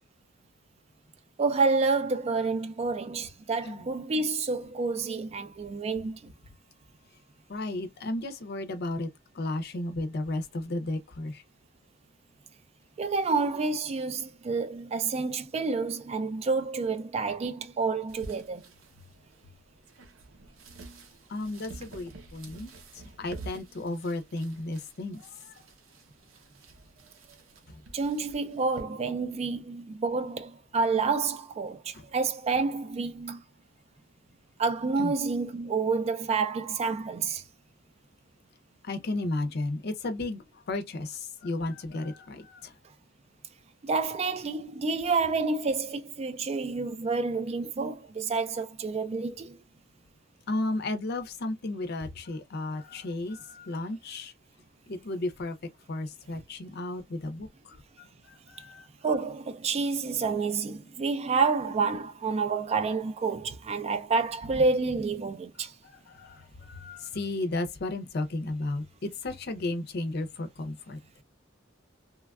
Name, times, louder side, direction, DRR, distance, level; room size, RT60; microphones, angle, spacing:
voice 1, 1.4-6.3 13.0-18.6 27.9-33.4 34.6-37.4 43.8-49.6 59.0-65.7, right 4 dB, 30° right, 0.3 m, -29 dB
voice 2, 7.5-9.1 9.4-11.4 21.3-22.7 23.2-25.2 35.0-35.1 38.8-40.4 40.7-42.7 50.5-54.3 54.9-55.6 55.9-57.5 58.5-58.8 66.1-66.4 66.7-71.0, left 2 dB, 55° left, 0.5 m, -33 dB
sound 1, 18.1-28.8, right 2 dB, 85° right, 0.7 m, -49 dB
3.1 x 2.3 x 2.2 m
head